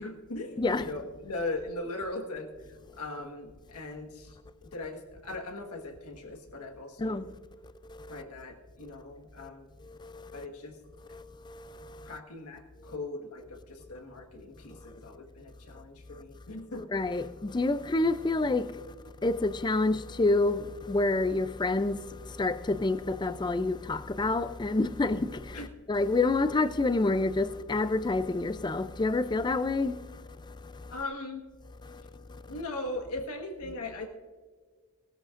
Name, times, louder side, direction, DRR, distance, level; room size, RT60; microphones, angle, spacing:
voice 1, 0.0-7.3 8.1-9.7 10.3-10.8 11.1-11.2 12.0-16.9 25.5-25.7 30.9-31.4 32.5-34.1, left 2 dB, 85° left, 1.5 m, -39 dB
voice 2, 9.8-10.5 11.1-12.2 12.8-12.9 14.9-15.0 15.7-15.8 16.1-16.2 16.9-19.0 19.2-25.6 25.9-30.9 31.8-32.5, left 2 dB, 20° left, 0.4 m, -29 dB
19.0 x 13.5 x 2.5 m
head